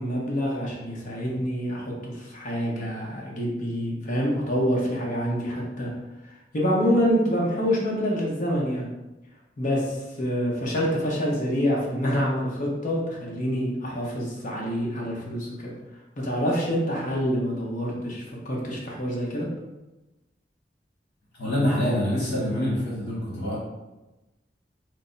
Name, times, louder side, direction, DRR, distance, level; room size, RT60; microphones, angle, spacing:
voice 1, 0.0-5.9 6.5-8.9 9.6-15.7 16.2-19.5, equal, 45° left, -3 dB, 0.8 m, -26 dB
voice 2, 21.3-23.6, left 1 dB, 85° left, -6 dB, 1.1 m, -25 dB
3.3 x 2.1 x 3.8 m, 1.0 s
head